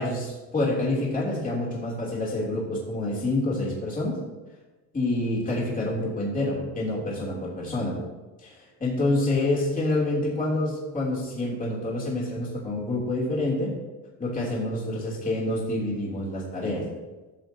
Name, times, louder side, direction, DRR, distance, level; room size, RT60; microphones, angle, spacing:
voice 1, 0.0-4.2 4.9-8.0 8.4-13.7 14.2-16.8, left 2 dB, 20° left, -5 dB, 3.0 m, -27 dB
13.5 x 7.3 x 2.8 m, 1.2 s
cardioid pair, 120°, 38 cm